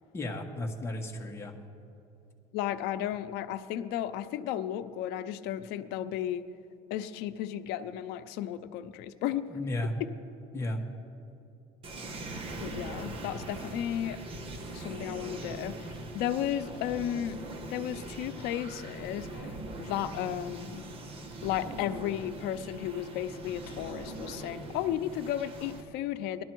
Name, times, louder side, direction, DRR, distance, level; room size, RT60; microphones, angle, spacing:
voice 1, 0.1-1.5 9.5-9.9 10.5-10.8, left 1 dB, 15° left, 1 dB, 1.2 m, -34 dB
voice 2, 2.5-6.4 6.9-9.5 12.6-14.2 14.7-17.4 17.6-21.0 21.4-26.4, left 11 dB, 80° left, 11 dB, 0.7 m, -34 dB
sound 1, 11.8-25.8, right 2 dB, 35° right, 1.2 m, -41 dB
18.0 x 12.0 x 4.6 m, 2.7 s
cardioid pair, 170°, 17 cm